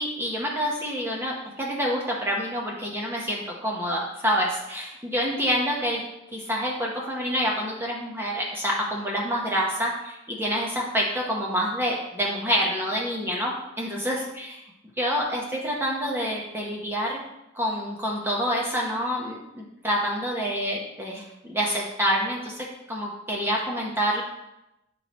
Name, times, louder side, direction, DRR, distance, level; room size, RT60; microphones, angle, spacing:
voice 1, 0.0-6.0 6.3-14.6 15.0-17.2 17.5-24.2, equal, 10° right, -3 dB, 0.7 m, -27 dB
8.7 x 3.1 x 4.0 m, 0.90 s
head